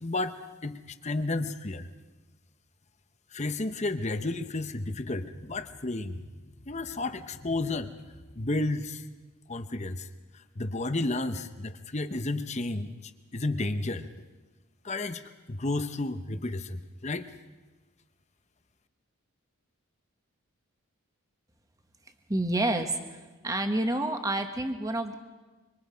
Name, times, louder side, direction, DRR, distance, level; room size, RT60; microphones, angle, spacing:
voice 1, 0.0-0.4 0.6-1.9 3.3-6.2 6.7-7.9 8.4-9.0 9.5-10.1 10.6-12.9 13.3-14.1 14.8-15.2 15.5-17.3, left 2 dB, 30° left, 10 dB, 0.9 m, -32 dB
voice 2, 22.3-23.2 23.4-25.2, right 1 dB, 15° right, 6 dB, 1.4 m, -28 dB
25.5 x 24.5 x 5.2 m, 1.2 s
head